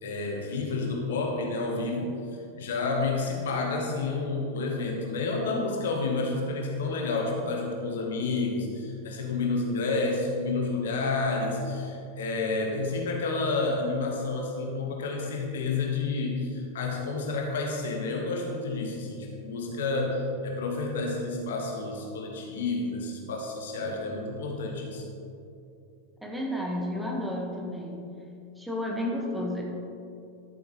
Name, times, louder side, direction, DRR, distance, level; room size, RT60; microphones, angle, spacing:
voice 1, 0.0-2.1 2.6-25.0, left 3 dB, 60° left, 1 dB, 1.3 m, -30 dB
voice 2, 26.2-28.1 28.6-29.6, left 1 dB, 5° right, -2 dB, 1.4 m, -31 dB
12.0 x 7.9 x 3.1 m, 2.6 s
figure-of-eight pair, 90°, 0 cm